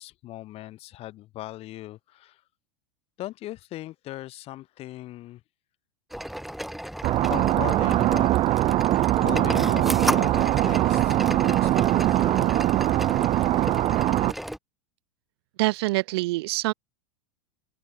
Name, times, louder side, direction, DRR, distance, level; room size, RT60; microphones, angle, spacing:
voice 1, 0.0-2.4 3.2-5.4 7.3-8.3 9.2-12.5, left 16 dB, 45° left, 6.0 m, -38 dB
sound 1, 6.1-14.6, equal, ahead, 3.1 m, -33 dB
sound 2, 7.0-14.3, right 15 dB, 40° right, 1.0 m, -22 dB
voice 2, 15.6-16.7, right 21 dB, 70° right, 0.7 m, -25 dB
open air
hypercardioid pair, 105°, 14 cm